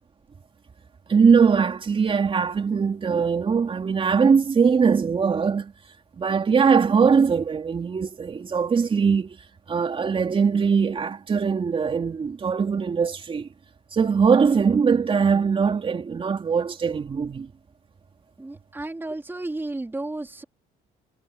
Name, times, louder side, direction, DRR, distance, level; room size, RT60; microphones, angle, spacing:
voice 1, 1.1-5.7 6.2-9.4 9.7-13.5 13.9-17.5, right 6 dB, 30° right, 3.8 m, -21 dB
voice 2, 18.4-20.4, right 2 dB, 15° right, 3.5 m, -33 dB
cardioid pair, 110°, 17 cm